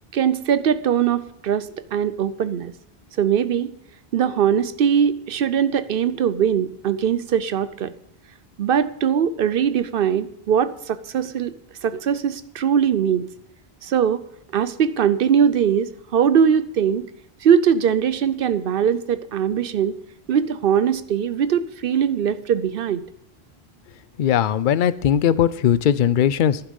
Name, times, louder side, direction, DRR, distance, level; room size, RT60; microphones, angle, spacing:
voice 1, 0.1-2.7 3.2-3.7 4.1-7.9 8.6-11.5 11.8-13.3 13.8-14.2 14.5-17.1 17.4-19.9 20.3-23.0, right 8 dB, 65° right, 15 dB, 0.8 m, -21 dB
voice 2, 24.2-26.6, left 9 dB, 60° left, 16 dB, 0.7 m, -19 dB
11.5 x 10.0 x 5.3 m, 0.78 s
omnidirectional pair, 1.0 m